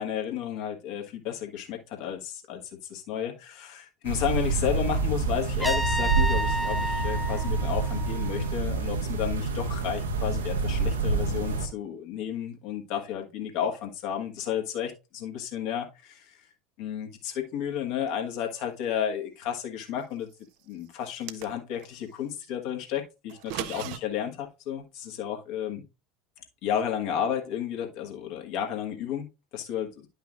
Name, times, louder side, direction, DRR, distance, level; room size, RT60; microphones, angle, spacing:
voice 1, 0.0-2.6 2.9-16.3 16.8-20.3 20.7-25.8 26.6-29.2 29.5-30.1, left 9 dB, 55° left, 1.5 m, -32 dB
sound 1, 4.0-11.7, right 4 dB, 75° right, 1.0 m, -27 dB
Trumpet, 5.6-8.5, equal, 5° right, 0.6 m, -31 dB
sound 2, 21.0-21.9 23.3-24.0, right 12 dB, 55° right, 0.5 m, -37 dB
10.5 x 5.5 x 2.5 m
figure-of-eight pair, 75°, 0 cm